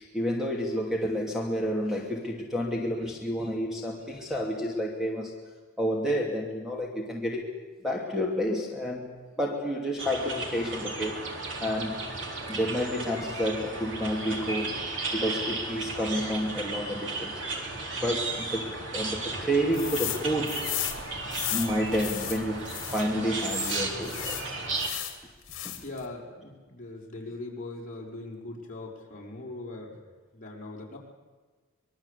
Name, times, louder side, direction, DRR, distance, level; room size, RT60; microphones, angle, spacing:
voice 1, 0.0-5.3 5.8-7.5 7.8-11.3 11.6-12.1 12.5-14.8 15.1-17.7 18.0-20.6 20.9-21.0 21.5-24.4 25.6-25.7, equal, ahead, 0 dB, 2.6 m, -30 dB
sound 1, 10.0-24.9, right 3 dB, 60° right, 4.0 m, -34 dB
sound 2, 19.7-20.2 20.5-23.0 23.4-25.2 25.5-26.0, left 13 dB, 60° left, 3.0 m, -34 dB
voice 2, 25.8-30.0 30.3-31.0, left 2 dB, 40° left, -2 dB, 5.5 m, -40 dB
25.0 x 22.0 x 8.4 m, 1.4 s
head